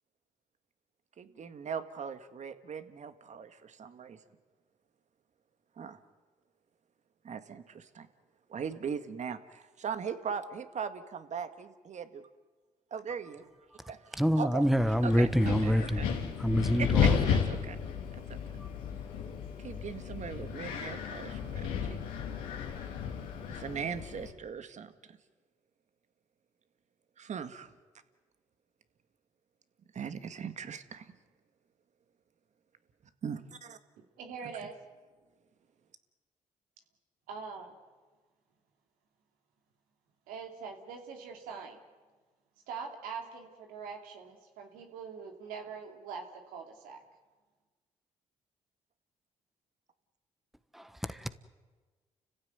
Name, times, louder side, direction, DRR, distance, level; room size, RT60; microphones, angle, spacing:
voice 1, 1.2-4.2 5.8-6.0 7.2-8.1 8.5-12.3 12.9-13.5 13.9-14.7 15.0-16.1 16.7-17.8 18.1-18.6 19.6-22.0 23.5-25.2 27.2-27.7 29.9-31.1 33.2-33.8 34.4-34.7, right 6 dB, 55° right, 10 dB, 1.9 m, -40 dB
voice 2, 14.2-17.2 50.7-51.3, equal, ahead, 12 dB, 1.3 m, -27 dB
Wind, 14.8-24.3, left 7 dB, 90° left, 2.8 m, -33 dB
voice 3, 34.2-34.7 37.3-37.8 40.3-41.8 42.7-47.0, right 5 dB, 85° right, 3 dB, 2.8 m, -43 dB
30.0 x 15.5 x 9.5 m, 1.4 s
supercardioid pair, 55°, 14 cm